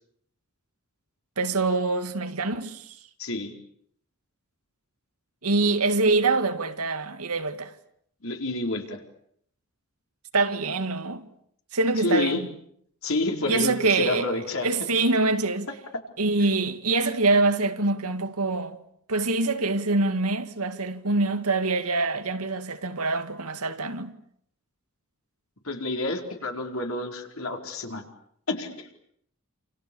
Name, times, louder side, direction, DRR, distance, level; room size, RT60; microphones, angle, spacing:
voice 1, 1.4-3.0 5.4-7.7 10.3-11.3 11.7-12.5 13.5-14.3 14.6-15.7 16.2-18.8 19.1-24.2, right 3 dB, 80° right, 2.1 m, -25 dB
voice 2, 3.2-3.5 8.2-9.0 12.0-12.4 13.0-14.7 25.6-28.0 28.5-28.9, left 2 dB, 65° left, 4.7 m, -29 dB
29.0 x 28.5 x 7.1 m
head